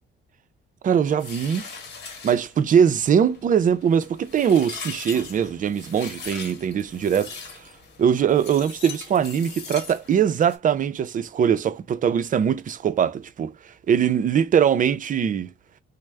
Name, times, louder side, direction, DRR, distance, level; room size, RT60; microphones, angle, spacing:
voice 1, 0.8-1.7 2.2-7.4 8.0-13.5 13.9-15.5, right 8 dB, 40° right, 0.4 m, -21 dB
sound 1, 1.2-10.6, left 5 dB, 55° left, 1.0 m, -40 dB
3.1 x 2.0 x 3.3 m
cardioid pair, 90°, 20 cm